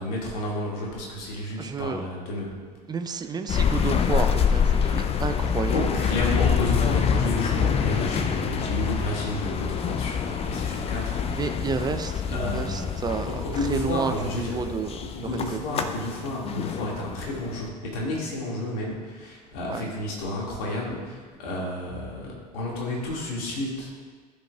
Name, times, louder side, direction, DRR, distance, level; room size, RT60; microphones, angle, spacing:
voice 1, 0.0-2.6 5.7-11.4 12.3-12.9 13.2-14.7 15.0-23.9, left 1 dB, 60° left, -3 dB, 2.1 m, -31 dB
voice 2, 1.6-2.1 2.9-5.9 11.3-13.4 13.7-15.0 15.5-15.6 19.7-19.9, right 5 dB, 20° right, 8 dB, 0.5 m, -30 dB
sound 1, 3.5-17.7, left 7 dB, 30° left, 0.6 m, -26 dB
14.0 x 5.4 x 2.4 m, 1.5 s
figure-of-eight pair, 65°, 21 cm